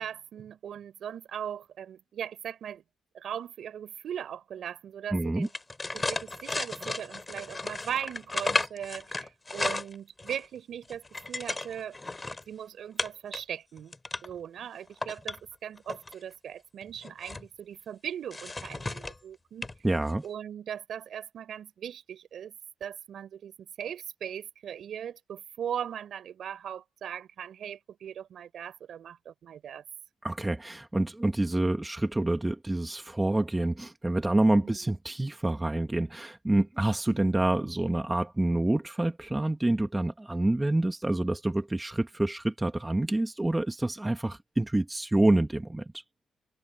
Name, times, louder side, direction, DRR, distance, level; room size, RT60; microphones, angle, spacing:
voice 1, 0.0-2.8 3.1-5.5 5.9-12.0 12.5-13.9 14.2-19.7 20.2-22.6 22.8-29.8 34.6-34.8, right 9 dB, 65° right, 5.2 m, -39 dB
voice 2, 5.1-5.5 19.8-20.2 30.2-46.0, right 2 dB, 10° right, 1.8 m, -27 dB
sound 1, 5.4-10.5 10.8-12.4 13.0-13.4 13.8-14.4 14.9-16.1 16.8-17.5 18.3-19.2 19.6-19.8 20.1-20.3, left 2 dB, 20° left, 3.8 m, -34 dB
cardioid pair, 90°, 0 cm